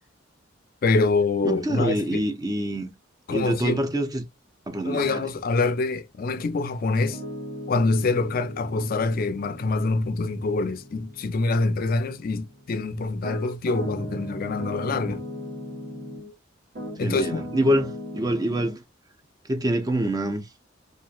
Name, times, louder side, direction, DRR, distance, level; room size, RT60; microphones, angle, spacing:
voice 1, 0.8-2.2 3.3-3.9 4.8-7.2 7.7-15.2 17.0-17.4, left 3 dB, 50° left, 0.4 m, -25 dB
voice 2, 1.4-2.9 3.3-4.3 4.7-5.3 17.0-18.8 19.5-20.5, right 1 dB, 20° right, 0.5 m, -26 dB
Piano, 7.0-16.3 16.7-18.7, left 1 dB, 60° right, 1.6 m, -38 dB
3.0 x 2.4 x 2.3 m
head